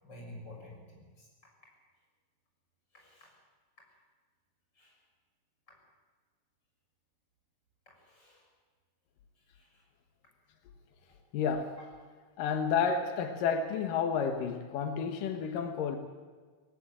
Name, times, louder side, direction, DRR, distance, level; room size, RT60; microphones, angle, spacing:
voice 1, 0.0-1.0 2.9-3.3 4.8-4.9 8.1-8.4 9.5-9.7, left 1 dB, 30° left, -1 dB, 6.9 m, -50 dB
voice 2, 11.3-11.8 12.4-16.0, left 6 dB, 90° left, 6 dB, 3.0 m, -31 dB
18.5 x 18.0 x 9.0 m, 1.5 s
omnidirectional pair, 3.7 m